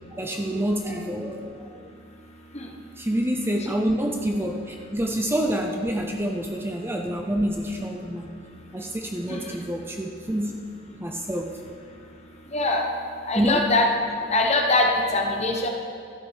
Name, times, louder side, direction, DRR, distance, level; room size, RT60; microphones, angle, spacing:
voice 1, 0.1-1.8 3.0-8.4 8.7-10.5 11.0-11.6 13.3-13.7, equal, 10° right, 2 dB, 0.5 m, -27 dB
voice 2, 12.5-12.8 13.3-13.9 14.3-15.7, left 2 dB, 35° left, 2 dB, 1.2 m, -22 dB
12.5 x 8.1 x 4.9 m, 2.4 s
head